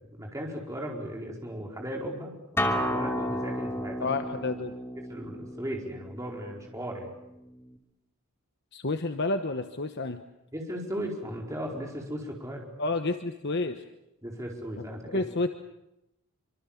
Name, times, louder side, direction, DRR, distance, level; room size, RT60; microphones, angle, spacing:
voice 1, 0.0-4.1 5.1-7.1 10.5-12.7 14.2-15.2, equal, 15° right, 0 dB, 4.5 m, -37 dB
Acoustic guitar, 2.6-7.8, equal, 10° left, 2.7 m, -33 dB
voice 2, 4.0-4.7 8.7-10.2 12.8-13.8 15.1-15.5, left 3 dB, 50° left, 7 dB, 1.1 m, -29 dB
26.0 x 25.5 x 7.2 m, 0.90 s
head